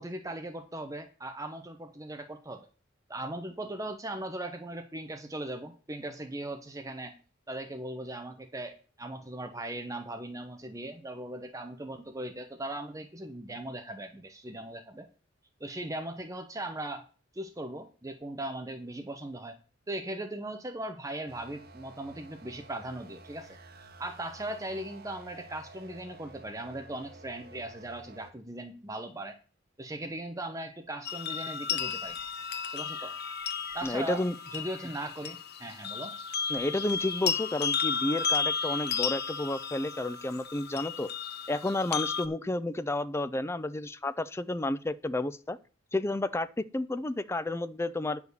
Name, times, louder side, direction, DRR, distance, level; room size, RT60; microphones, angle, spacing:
voice 1, 0.0-2.7 3.1-7.1 7.5-15.1 15.6-17.0 17.3-19.6 19.9-23.6 24.0-29.4 29.8-32.2 32.6-33.1 33.7-34.2 34.5-36.2, right 1 dB, 15° right, 6 dB, 0.7 m, -39 dB
sound 1, 21.3-28.3, right 2 dB, 50° right, 1.0 m, -51 dB
sound 2, 31.1-42.3, left 6 dB, 55° left, 0.8 m, -33 dB
voice 2, 33.8-34.3 36.5-41.1 41.5-45.6 45.9-48.2, left 2 dB, 15° left, 14 dB, 0.4 m, -31 dB
9.7 x 4.9 x 6.7 m, 0.38 s
head